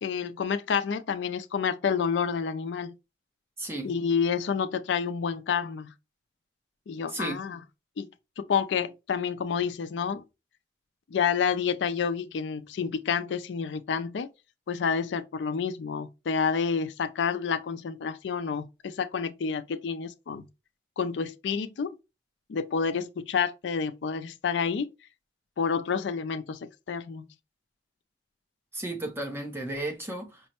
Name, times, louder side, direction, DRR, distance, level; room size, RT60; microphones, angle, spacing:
voice 1, 0.0-2.9 3.8-5.9 6.9-7.6 8.0-8.1 8.4-10.2 11.1-14.3 14.7-20.5 21.0-22.0 22.5-24.9 25.6-27.2, left 6 dB, 90° left, 0.4 m, -29 dB
voice 2, 3.6-3.9 7.1-7.4 28.7-30.4, right 1 dB, 15° right, 0.7 m, -34 dB
5.2 x 2.1 x 2.9 m
head